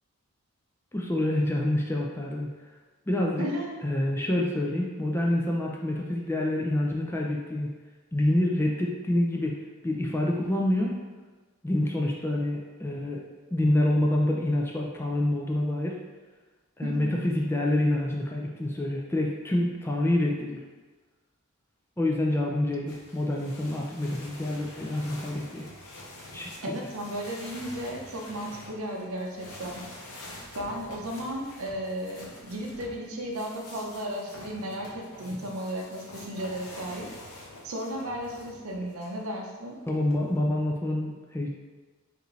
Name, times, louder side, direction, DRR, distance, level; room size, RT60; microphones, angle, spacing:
voice 1, 0.9-2.5 3.1-3.5 3.8-7.7 8.1-9.6 9.8-10.9 11.6-13.2 13.5-16.0 16.8-20.6 22.0-25.7 26.3-26.5 39.9-41.5, left 1 dB, 10° left, -1 dB, 0.3 m, -27 dB
voice 2, 3.4-3.8 16.8-17.3 26.6-29.9 30.5-37.1 37.6-39.8, equal, 70° right, 0 dB, 0.7 m, -35 dB
sound 1, 22.9-39.2 39.9-40.6, left 1 dB, 90° left, 0.8 m, -46 dB
5.0 x 2.6 x 3.1 m, 1.3 s
head